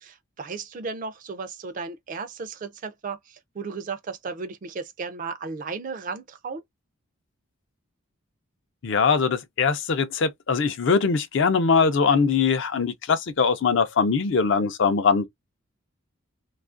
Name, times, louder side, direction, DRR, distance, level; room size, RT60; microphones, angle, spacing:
voice 1, 0.0-6.6, right 4 dB, 40° right, 0.3 m, -35 dB
voice 2, 8.8-15.3, left 5 dB, 55° left, 0.4 m, -22 dB
2.7 x 2.4 x 2.4 m
head